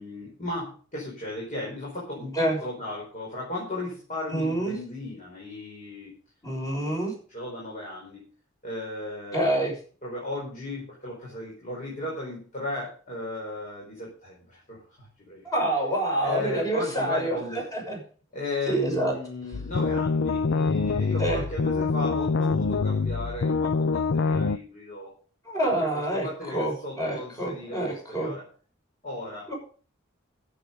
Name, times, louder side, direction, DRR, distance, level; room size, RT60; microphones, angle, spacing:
voice 1, 0.0-6.1 6.8-7.0 7.3-8.3 8.6-9.6 10.0-15.4 16.2-17.7 18.3-25.2 25.9-28.4 29.0-29.5, left 2 dB, 40° left, -4 dB, 4.9 m, -36 dB
voice 2, 4.3-4.7 6.4-7.1 9.3-9.7 15.4-18.0 18.7-19.1 21.2-21.4 25.4-28.3 29.5-29.6, right 1 dB, 20° left, -1 dB, 6.2 m, -27 dB
sound 1, 19.5-24.6, left 4 dB, 65° left, 0.5 m, -25 dB
15.0 x 7.6 x 5.3 m, 0.41 s
head